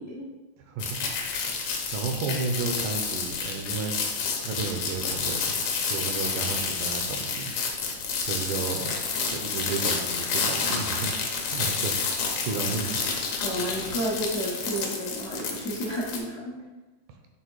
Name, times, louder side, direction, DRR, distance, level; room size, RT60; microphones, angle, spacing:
voice 1, 0.7-1.1 1.9-4.2 4.4-5.6 5.9-7.5 8.3-8.9 9.3-11.2 11.5-13.1, right 4 dB, 80° right, 4 dB, 2.2 m, -32 dB
sound 1, 0.8-16.2, left 5 dB, 70° left, 2.0 m, -29 dB
voice 2, 13.4-16.5, equal, 55° left, -7 dB, 0.8 m, -31 dB
6.8 x 3.6 x 4.6 m, 1.1 s
omnidirectional pair, 3.6 m